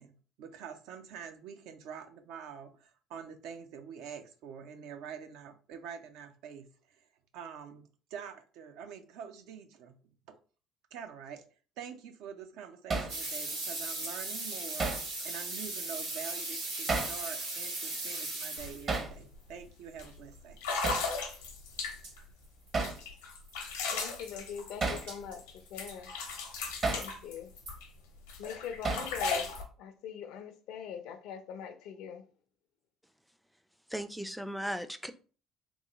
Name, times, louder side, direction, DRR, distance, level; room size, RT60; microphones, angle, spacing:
voice 1, 0.0-7.0 7.3-9.9 10.3-10.4 10.9-11.4 11.8-14.9 15.2-20.6, right 7 dB, 70° right, 0.5 m, -46 dB
Hammer, 12.9-13.2 14.8-15.1 16.9-17.2 18.9-19.1 20.8-21.1 22.7-23.0 24.8-25.1 26.8-27.1 28.8-29.2, right 3 dB, 40° right, 0.8 m, -31 dB
sound 1, 13.1-19.0 21.8-21.9 22.0-22.1 22.7-22.8 22.9-23.0 23.5-23.7 25.1-25.4 25.9-26.0 26.6-27.1 27.7-27.8, right 2 dB, 85° right, 1.4 m, -38 dB
sound 2, 18.6-18.7 19.1-19.4 20.0-20.1 20.6-22.2 22.8-25.5 25.8-27.9 28.3-29.6, left 4 dB, 85° left, 0.8 m, -36 dB
voice 2, 23.9-26.1 26.9-27.5 28.4-29.5 29.8-32.3, left 8 dB, 70° left, 0.5 m, -42 dB
voice 3, 33.9-35.1, equal, ahead, 0.4 m, -37 dB
3.7 x 2.1 x 2.9 m
hypercardioid pair, 65°, 0 cm